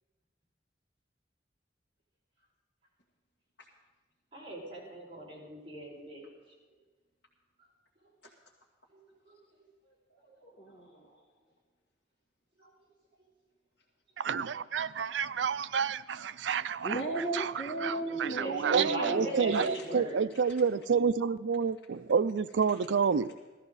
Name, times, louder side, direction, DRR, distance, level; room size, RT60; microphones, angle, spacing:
voice 1, 4.3-6.3 8.9-9.0 9.3-9.4 12.6-12.7 18.1-20.2, right 2 dB, 30° right, -6 dB, 5.5 m, -39 dB
voice 2, 10.2-11.2 16.8-20.1, right 2 dB, 70° left, -6 dB, 1.9 m, -37 dB
voice 3, 14.2-23.3, right 6 dB, 90° right, 15 dB, 0.4 m, -29 dB
17.5 x 13.5 x 4.1 m, 1.3 s
head